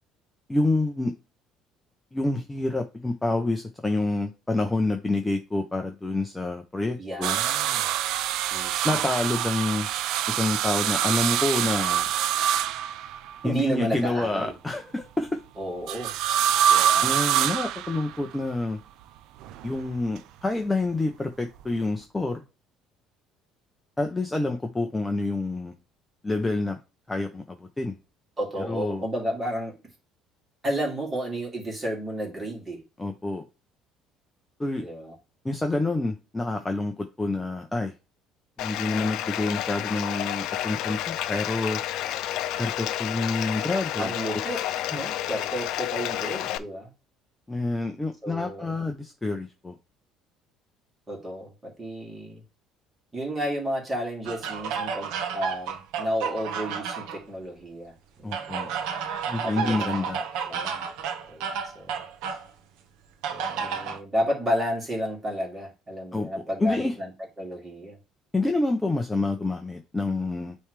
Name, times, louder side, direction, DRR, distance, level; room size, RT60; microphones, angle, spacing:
voice 1, 0.5-1.1 2.1-7.4 8.8-9.9 10.3-12.1 13.4-15.4 17.0-18.8 19.6-22.4 24.0-25.8 26.2-26.8 27.1-28.0 28.7-29.0 33.0-33.4 34.6-34.8 35.4-37.9 38.6-41.8 42.6-44.1 44.9-45.0 47.5-49.8 58.2-58.7 59.3-60.2 63.6-63.9 66.1-66.3 66.6-66.9 68.3-70.6, left 2 dB, 10° left, 0.7 m, -28 dB
voice 2, 7.0-7.9 8.5-9.0 13.4-14.5 15.6-16.2 16.7-17.1 28.4-29.8 30.6-32.8 34.8-35.2 44.0-44.6 44.9-46.9 48.2-48.7 51.1-52.4 53.1-58.6 59.4-60.8 61.3-62.0 63.3-67.1 67.4-68.0, equal, 15° right, 2.7 m, -32 dB
sound 1, 7.2-13.5 15.9-18.4 19.4-20.2 21.6-21.7, right 10 dB, 65° right, 0.5 m, -25 dB
Bathtub (filling or washing), 38.6-46.6, left 12 dB, 65° left, 0.6 m, -30 dB
sound 2, 54.3-57.2 58.3-62.5 63.2-64.0, right 7 dB, 80° right, 1.1 m, -31 dB
9.2 x 3.3 x 3.3 m
cardioid pair, 160°, 0 cm